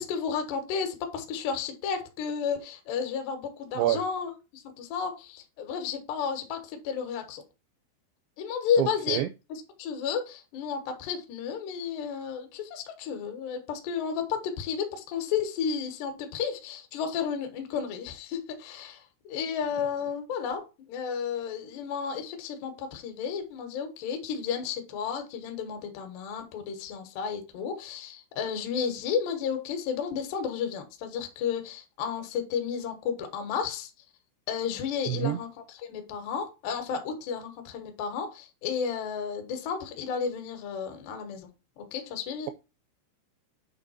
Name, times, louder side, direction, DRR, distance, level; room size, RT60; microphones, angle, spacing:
voice 1, 0.0-7.4 8.4-9.2 9.5-20.6 20.9-33.9 34.5-41.5 41.8-42.5, left 7 dB, 65° left, 3.2 m, -32 dB
voice 2, 8.8-9.3 35.1-35.4, right 14 dB, 85° right, 2.5 m, -27 dB
9.1 x 3.6 x 5.7 m
omnidirectional pair, 5.6 m